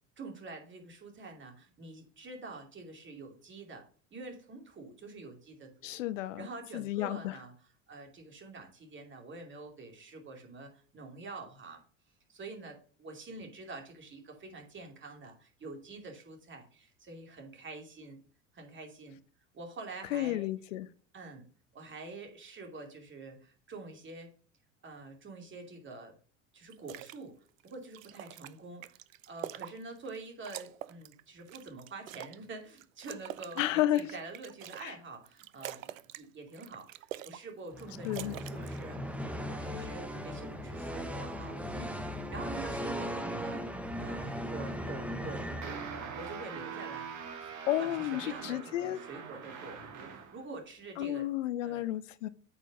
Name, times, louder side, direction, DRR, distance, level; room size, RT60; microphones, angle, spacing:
voice 1, 0.2-3.8 4.1-6.0 6.4-11.8 12.3-18.2 18.5-19.2 19.5-20.5 21.1-21.5 21.7-24.3 24.8-26.1 26.5-27.3 27.6-29.0 29.3-43.7 44.0-45.8 46.2-47.5 47.8-51.3 51.6-51.9, right 3 dB, 30° right, 2.9 m, -46 dB
voice 2, 5.8-6.5 6.7-7.3 20.1-20.9 33.6-34.1 34.8-34.9 38.0-38.4 47.7-49.0 51.0-52.3, left 13 dB, 70° left, 0.7 m, -32 dB
sound 1, 26.7-27.2 27.6-30.2 30.4-32.4 32.8-34.9 35.2-36.3 36.5-37.4 37.7-38.8, right 13 dB, 80° right, 0.5 m, -45 dB
sound 2, 37.7-46.4, equal, 5° right, 1.1 m, -38 dB
sound 3, 45.6-50.4, right 6 dB, 45° right, 2.2 m, -43 dB
8.6 x 5.0 x 5.3 m
figure-of-eight pair, 75°, 39 cm